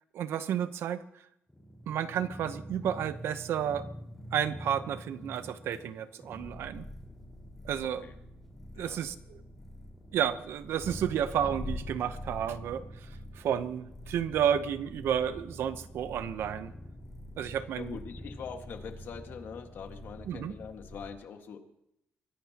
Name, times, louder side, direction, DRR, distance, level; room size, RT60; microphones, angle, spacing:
voice 1, 0.1-1.0 1.9-3.9 4.3-6.8 7.6-8.0 8.8-9.4 10.1-12.8 13.4-16.7 17.4-18.0 20.3-20.6, right 9 dB, 80° right, 12 dB, 0.9 m, -31 dB
sound 1, 1.5-21.1, equal, 5° left, 4.7 m, -44 dB
voice 2, 7.8-8.2 8.7-9.1 17.7-21.6, left 6 dB, 65° left, 5 dB, 1.7 m, -43 dB
23.0 x 16.5 x 2.9 m, 0.80 s
cardioid pair, 150°, 4 cm